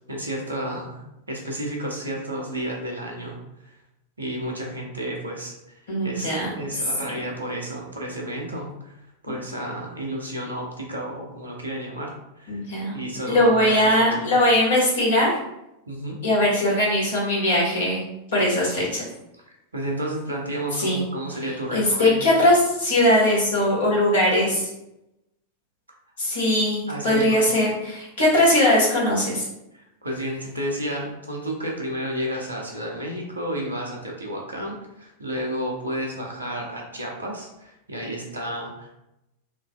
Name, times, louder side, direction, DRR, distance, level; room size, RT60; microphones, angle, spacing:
voice 1, 0.1-1.0 1.3-3.7 4.2-12.6 12.9-14.3 15.9-16.2 19.5-22.3 26.9-27.4 29.7-38.9, right 1 dB, 80° right, 0 dB, 0.6 m, -32 dB
voice 2, 5.9-6.5 12.5-13.0 13.3-15.4 16.2-18.0 18.3-19.0 20.8-21.0 21.7-24.7 26.2-29.4, left 1 dB, 65° left, -5 dB, 1.3 m, -20 dB
3.1 x 2.4 x 2.3 m, 0.87 s
figure-of-eight pair, 90°, 0 cm